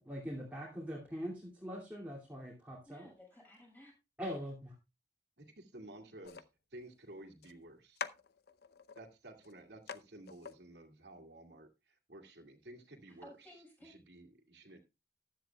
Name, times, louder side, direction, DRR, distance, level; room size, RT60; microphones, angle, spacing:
voice 1, 0.1-3.1 4.2-4.7, equal, 10° right, -3 dB, 2.5 m, -42 dB
voice 2, 2.8-3.9 13.1-14.0, equal, 10° left, -1 dB, 6.5 m, -56 dB
voice 3, 5.4-6.4 6.7-8.0 8.9-13.3 13.8-14.8, right 1 dB, 75° right, 3 dB, 2.2 m, -53 dB
sound 1, 6.2-6.5 7.4-7.5 8.0-9.0 9.4-9.5 9.9-10.0 10.3-10.6, left 6 dB, 65° left, 0.7 m, -45 dB
14.5 x 10.5 x 2.3 m, 0.26 s
head